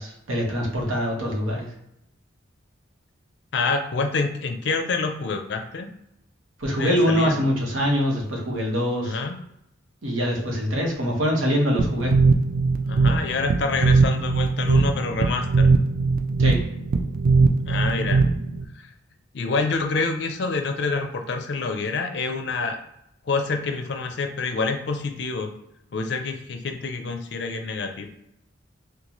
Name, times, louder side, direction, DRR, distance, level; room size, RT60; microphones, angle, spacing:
voice 1, 0.0-1.7 6.6-9.2 10.0-12.1 16.4-16.6, equal, 90° right, -1 dB, 1.0 m, -24 dB
voice 2, 3.5-5.9 6.8-7.4 9.0-9.4 12.9-15.7 17.7-18.2 18.8-18.9 19.3-22.8 23.3-25.5 25.9-28.1, left 4 dB, 60° left, 5 dB, 0.4 m, -27 dB
sound 1, 11.8-18.6, right 4 dB, 45° right, 0.3 m, -20 dB
3.9 x 2.3 x 2.9 m, 0.79 s
head